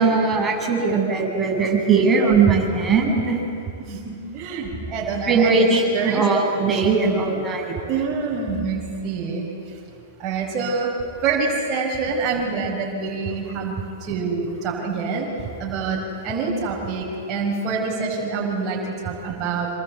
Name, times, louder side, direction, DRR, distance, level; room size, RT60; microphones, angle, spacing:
voice 1, 0.0-3.4 5.3-7.7, right 4 dB, 15° right, -2 dB, 7.2 m, -19 dB
voice 2, 3.8-5.7 5.9-6.3 6.6-6.8 7.9-9.5 10.2-10.9 11.2-15.3 15.6-19.7, right 4 dB, 30° right, -4 dB, 5.4 m, -26 dB
27.0 x 26.5 x 8.1 m, 2.6 s
hypercardioid pair, 125°, 0 cm